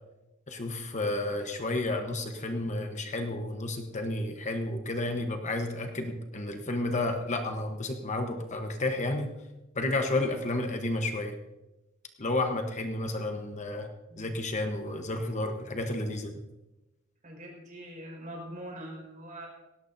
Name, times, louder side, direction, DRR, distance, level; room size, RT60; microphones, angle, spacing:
voice 1, 0.5-9.3 9.7-11.3 12.2-13.9 14.2-16.3, left 2 dB, 40° left, 5 dB, 1.1 m, -31 dB
voice 2, 14.1-14.5 17.2-19.5, right 1 dB, 40° right, 0 dB, 5.1 m, -43 dB
18.5 x 17.5 x 2.7 m, 1.0 s
head